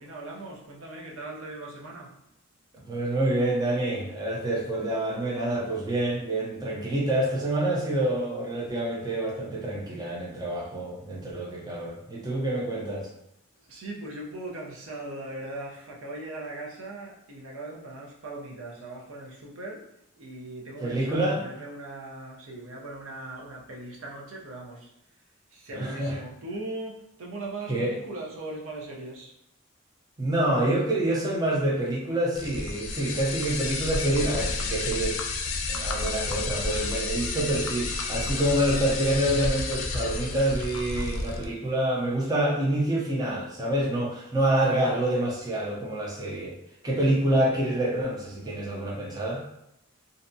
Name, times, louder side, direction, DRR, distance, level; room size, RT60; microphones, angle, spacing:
voice 1, 0.0-2.1 13.6-19.8 20.2-24.9 25.5-29.3, right 2 dB, 85° right, -2 dB, 0.6 m, -39 dB
voice 2, 2.9-13.1 20.8-21.5 25.7-26.2 27.7-27.9 30.2-35.2 35.7-46.5 46.8-49.4, right 1 dB, 20° right, -4 dB, 0.4 m, -27 dB
sound 1, 32.3-41.5, left 3 dB, 85° left, 0.4 m, -31 dB
2.6 x 2.2 x 2.6 m, 0.82 s
head